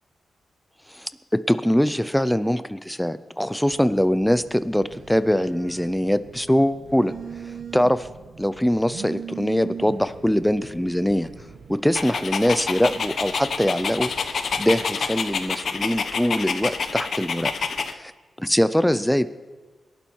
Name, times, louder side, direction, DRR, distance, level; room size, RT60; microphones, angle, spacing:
voice 1, 1.5-7.1 7.7-8.1 8.4-11.3 11.7-17.5 18.0-18.1 18.4-19.3, equal, 5° left, 13 dB, 0.6 m, -22 dB
Telephone, 3.7-11.8, right 7 dB, 65° right, 1.0 m, -40 dB
sound 1, 9.8-14.8, right 2 dB, 90° right, 6.7 m, -51 dB
Dog, 11.9-17.9, left 5 dB, 60° left, 1.0 m, -28 dB
24.5 x 11.5 x 4.7 m, 1.4 s
wide cardioid pair, 140°, 0 cm